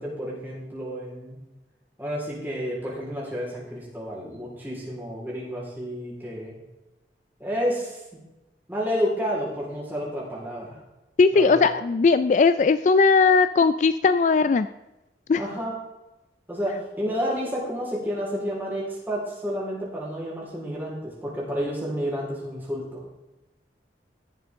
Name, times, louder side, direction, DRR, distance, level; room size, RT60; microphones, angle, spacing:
voice 1, 0.0-1.4 2.0-6.6 7.4-8.0 8.7-10.8 11.3-11.7 15.4-15.7 16.5-23.0, equal, 10° right, -6 dB, 4.3 m, -30 dB
voice 2, 11.2-14.7 15.3-15.4, left 4 dB, 40° left, 12 dB, 0.3 m, -18 dB
17.5 x 7.0 x 3.7 m, 1.0 s
head